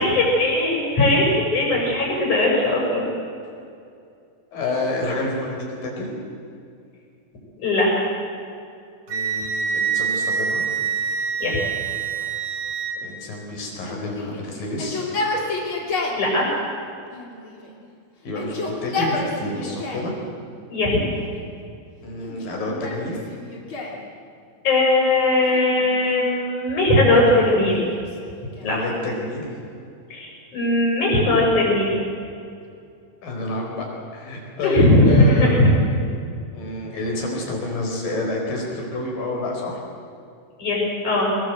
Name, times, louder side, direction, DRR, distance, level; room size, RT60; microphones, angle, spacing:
voice 1, 0.0-3.1 7.6-8.1 11.4-11.6 16.2-16.5 20.6-21.0 24.6-27.8 28.6-28.8 30.1-31.9 34.6-35.7 40.6-41.4, left 1 dB, 55° left, -2 dB, 8.1 m, -19 dB
voice 2, 4.5-6.1 9.1-10.6 13.0-15.0 18.2-20.1 22.0-23.3 28.6-29.6 33.2-35.8 36.5-39.8, left 2 dB, 70° left, 0 dB, 6.3 m, -29 dB
Wind instrument woodwind instrument, 9.1-13.0, right 6 dB, 50° right, 2.5 m, -25 dB
Yell, 13.8-16.2 17.1-17.9 18.2-20.1 20.9-21.5 22.2-24.0 25.4-26.3 27.1-28.8, left 3 dB, 35° left, 3.8 m, -31 dB
24.0 x 21.0 x 8.1 m, 2.4 s
omnidirectional pair, 4.1 m